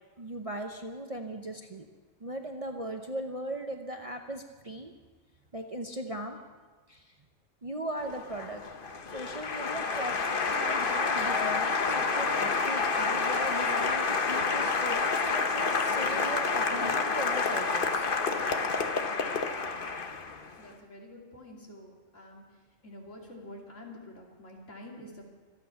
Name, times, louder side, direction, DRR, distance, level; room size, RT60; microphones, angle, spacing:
voice 1, 0.2-1.9 2.2-4.9 5.5-6.4 6.9-7.1 7.6-8.6 9.1-18.1, right 1 dB, 30° right, 4 dB, 0.8 m, -38 dB
Applause, 8.1-20.5, left 4 dB, 45° left, 1.1 m, -29 dB
voice 2, 20.6-22.4 22.8-25.3, left 1 dB, 65° left, -1 dB, 3.1 m, -47 dB
25.0 x 8.9 x 5.8 m, 1.4 s
omnidirectional pair, 1.4 m